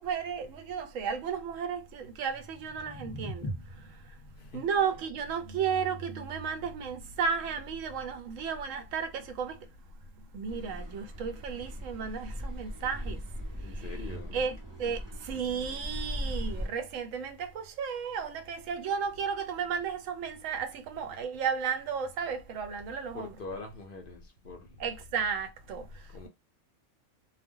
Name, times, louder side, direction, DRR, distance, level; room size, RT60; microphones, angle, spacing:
voice 1, 0.0-13.2 13.6-14.0 14.3-23.4 24.8-26.3, right 6 dB, 90° right, 1.0 m, -34 dB
sound 1, 2.3-8.4, equal, 20° left, 0.7 m, -44 dB
Car passing by / Accelerating revving vroom, 10.5-16.7, equal, 30° right, 0.5 m, -38 dB
voice 2, 13.6-14.4 23.1-24.8 26.1-26.3, left 3 dB, 60° left, 0.6 m, -43 dB
2.2 x 2.1 x 3.5 m
omnidirectional pair, 1.3 m